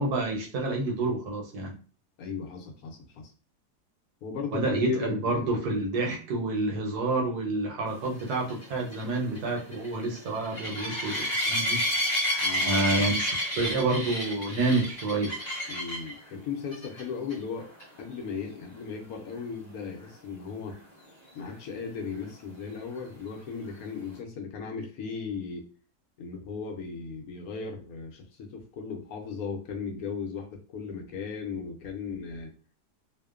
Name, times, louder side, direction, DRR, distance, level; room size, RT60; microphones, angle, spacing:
voice 1, 0.0-1.7 4.5-11.8 12.6-13.3 13.6-15.3, right 2 dB, 80° right, 0 dB, 1.2 m, -28 dB
voice 2, 2.2-3.3 4.2-5.6 12.4-13.1 15.7-17.7 18.0-20.8 21.3-25.7 26.2-30.5 30.7-32.5, left 5 dB, 70° left, 3 dB, 1.0 m, -37 dB
sound 1, 8.2-16.1 16.7-17.0 17.3-17.4 17.8-17.9 21.5-21.6, equal, 40° left, 0.7 m, -30 dB
2.8 x 2.1 x 2.3 m, 0.37 s
omnidirectional pair, 1.7 m